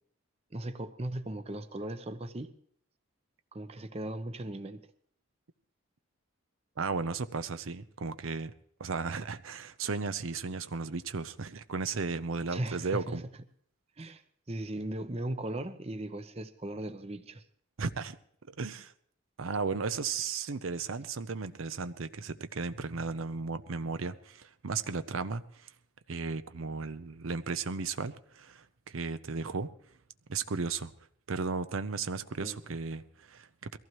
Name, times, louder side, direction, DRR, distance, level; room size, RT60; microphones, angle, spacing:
voice 1, 0.5-2.5 3.5-4.9 12.5-13.2 14.0-14.2 14.5-17.4 32.4-32.6, right 1 dB, 30° right, 10 dB, 0.7 m, -37 dB
voice 2, 6.8-8.5 8.8-13.2 17.8-18.2 18.5-18.9 19.4-25.7 26.1-29.7 30.3-30.9 31.3-33.8, right 4 dB, 80° right, 12 dB, 0.6 m, -35 dB
22.0 x 15.0 x 3.1 m, 0.63 s
head